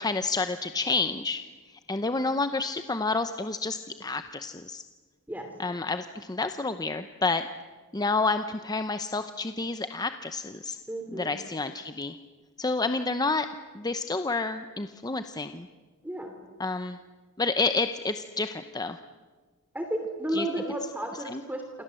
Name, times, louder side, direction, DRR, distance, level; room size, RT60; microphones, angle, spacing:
voice 1, 0.0-1.4 1.9-4.8 5.6-7.4 7.9-10.8 11.1-12.2 12.6-13.5 13.7-15.7 16.6-17.0 17.4-19.0 20.3-20.5 21.2-21.4, left 3 dB, 15° left, 9 dB, 0.7 m, -29 dB
voice 2, 10.9-11.3 16.0-16.3 19.7-21.6, right 1 dB, 10° right, 4 dB, 2.9 m, -32 dB
27.5 x 27.5 x 7.7 m, 1.4 s
head